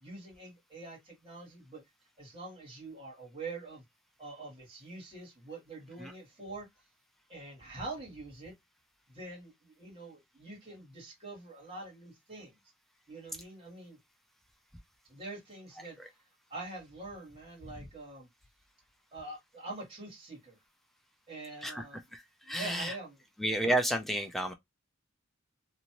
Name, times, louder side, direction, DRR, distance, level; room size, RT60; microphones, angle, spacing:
voice 1, 0.0-1.8 2.2-3.8 4.2-6.7 7.3-8.5 9.1-12.5 13.1-14.0 15.1-16.0 16.5-18.3 19.1-20.6 21.3-22.0 22.4-23.2, right 2 dB, 25° right, 1.7 m, -45 dB
voice 2, 21.6-23.0 23.4-24.5, right 1 dB, ahead, 0.3 m, -32 dB
2.8 x 2.6 x 2.9 m
head